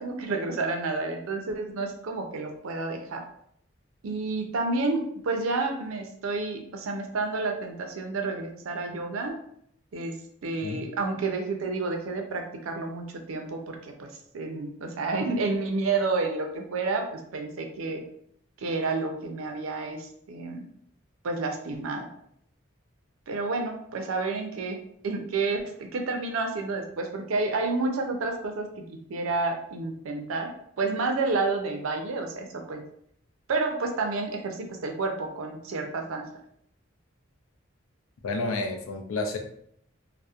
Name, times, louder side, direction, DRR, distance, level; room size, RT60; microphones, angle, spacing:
voice 1, 0.0-3.2 4.0-9.4 9.9-10.2 10.4-18.0 18.6-20.6 21.2-22.1 23.3-24.8 25.0-28.7 29.1-30.5 30.8-32.8 33.5-36.3, right 3 dB, 85° right, 4 dB, 0.5 m, -30 dB
voice 2, 38.2-39.4, left 2 dB, 85° left, 5 dB, 0.4 m, -30 dB
2.7 x 2.0 x 2.3 m, 0.68 s
head